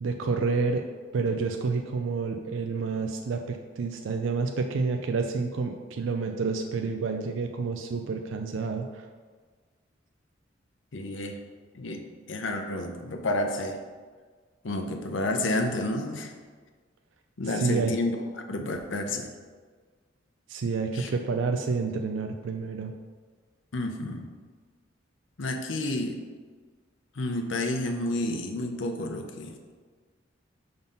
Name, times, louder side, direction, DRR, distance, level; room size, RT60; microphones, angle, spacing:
voice 1, 0.0-0.8 1.1-9.1 17.4-17.9 20.5-22.9, right 4 dB, 80° right, 4 dB, 0.4 m, -29 dB
voice 2, 10.9-11.4 11.7-12.0 12.3-13.8 14.6-16.3 17.4-18.1 18.4-19.3 20.9-21.1 23.7-24.3 25.4-26.2 27.2-29.5, left 2 dB, 70° left, 4 dB, 0.7 m, -30 dB
5.4 x 3.9 x 5.6 m, 1.5 s
head